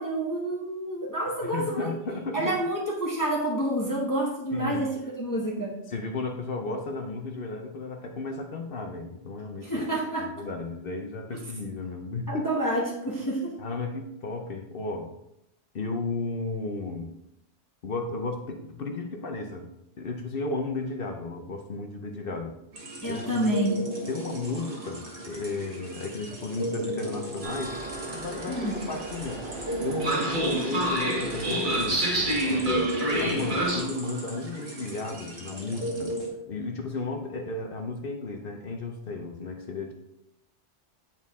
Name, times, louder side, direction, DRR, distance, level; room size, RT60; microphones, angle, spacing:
voice 1, 0.0-1.9 2.3-4.9 5.2-5.8 9.6-10.3 12.3-13.6 23.0-23.8 28.5-28.8, right 1 dB, 20° left, -3 dB, 1.0 m, -28 dB
voice 2, 1.4-2.6 4.5-4.8 5.9-9.9 10.2-12.5 13.6-15.1 15.7-17.2 17.8-19.7 20.0-22.6 23.1-23.5 24.1-29.4 29.8-36.1 36.5-39.9, left 3 dB, 55° left, 4 dB, 0.9 m, -34 dB
sound 1, 22.7-36.3, right 1 dB, 75° right, 1.7 m, -36 dB
Train, 27.4-33.8, right 1 dB, 45° right, 1.4 m, -28 dB
8.8 x 4.5 x 3.5 m, 0.83 s
omnidirectional pair, 1.2 m